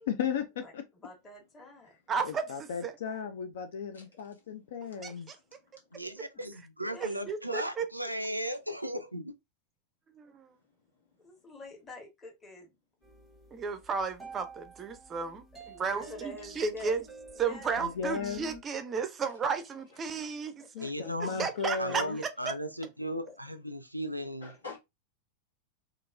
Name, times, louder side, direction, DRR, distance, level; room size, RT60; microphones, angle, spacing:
voice 1, 0.1-0.8 2.2-5.3 17.8-18.4 20.7-22.2, left 6 dB, 60° left, 0.3 m, -35 dB
voice 2, 1.0-1.9 6.3-6.4 6.9-7.2 11.2-12.8 15.7-17.0 17.3-17.9 20.6-21.3, left 1 dB, 20° left, 1.1 m, -47 dB
voice 3, 2.1-2.4 2.8-2.9 5.0-5.4 7.0-7.9 10.2-10.5 13.5-15.4 15.8-17.0 17.4-20.5 21.4-22.1, right 5 dB, 25° right, 0.4 m, -33 dB
voice 4, 3.9-4.6 5.5-5.9 10.8-11.1 11.4-11.5 13.3-13.6 19.9-20.0 21.9-22.0 22.8-22.9 23.2-23.4 24.4-24.8, left 4 dB, 75° left, 1.2 m, -50 dB
voice 5, 5.9-9.3 20.8-21.4 21.8-24.5, equal, 90° right, 0.3 m, -36 dB
sound 1, 13.0-18.6, right 2 dB, 5° right, 0.8 m, -49 dB
2.9 x 2.4 x 2.3 m
figure-of-eight pair, 90°, 0 cm